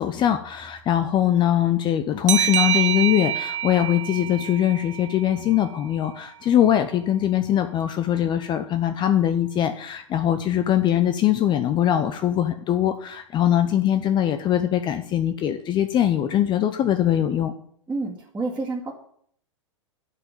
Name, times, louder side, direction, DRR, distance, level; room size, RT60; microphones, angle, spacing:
voice 1, 0.0-17.5, left 11 dB, 30° left, 9 dB, 0.8 m, -22 dB
sound 1, 2.3-5.6, right 11 dB, 70° right, 0.5 m, -26 dB
voice 2, 17.9-18.9, right 3 dB, 10° right, -6 dB, 2.4 m, -29 dB
10.5 x 5.9 x 8.6 m, 0.63 s
figure-of-eight pair, 100°, 17 cm